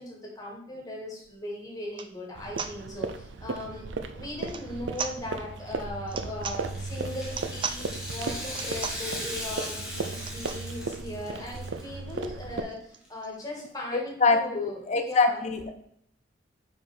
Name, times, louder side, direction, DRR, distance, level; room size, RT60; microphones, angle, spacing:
voice 1, 0.0-3.9 4.1-15.5, left 1 dB, 20° left, -2 dB, 1.8 m, -38 dB
sound 1, 1.2-1.3 1.9-2.1 2.6-2.8 4.4-4.7 4.9-5.2 6.0-6.6 7.2-7.8 8.4-9.1 10.2-10.6 11.2-11.3 11.5-11.6 11.9-13.4, right 6 dB, 25° right, 0.3 m, -37 dB
sound 2, 2.3-12.6, right 3 dB, 75° right, 0.5 m, -36 dB
Rattle (instrument), 6.5-11.8 12.1-12.2 13.0-13.1, equal, 5° right, 1.5 m, -38 dB
voice 2, 14.2-15.7, left 4 dB, 35° left, 6 dB, 0.6 m, -24 dB
5.0 x 4.7 x 5.6 m, 0.69 s
head